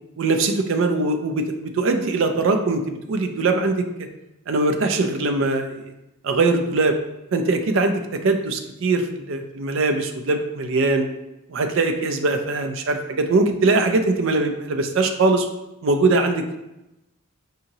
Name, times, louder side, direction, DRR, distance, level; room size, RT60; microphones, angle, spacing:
voice 1, 0.2-4.1 4.5-5.8 6.2-6.9 7.3-11.1 11.5-15.5 15.8-16.6, right 3 dB, 65° right, 5 dB, 0.4 m, -21 dB
4.9 x 2.8 x 2.7 m, 0.93 s
head